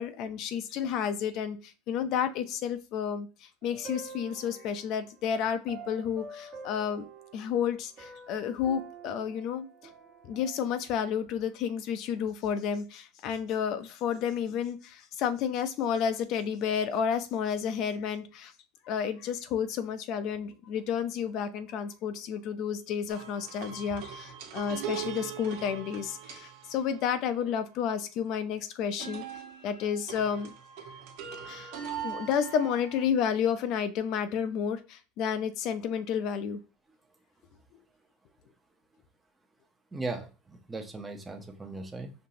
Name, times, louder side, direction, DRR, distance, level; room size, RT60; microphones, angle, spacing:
voice 1, 0.0-7.1 7.3-9.7 10.2-18.5 18.9-29.2 29.6-30.5 31.4-31.7 32.0-36.6, left 8 dB, 50° left, 11 dB, 0.6 m, -31 dB
sound 1, 3.6-5.0 5.7-7.7 8.0-10.9, right 4 dB, 40° right, 1.2 m, -47 dB
sound 2, 23.1-27.7 29.0-33.1, right 8 dB, 70° right, 1.1 m, -41 dB
voice 2, 39.9-42.1, right 3 dB, 10° right, 4 dB, 0.8 m, -38 dB
5.3 x 2.9 x 2.8 m, 0.32 s
supercardioid pair, 135°, 0 cm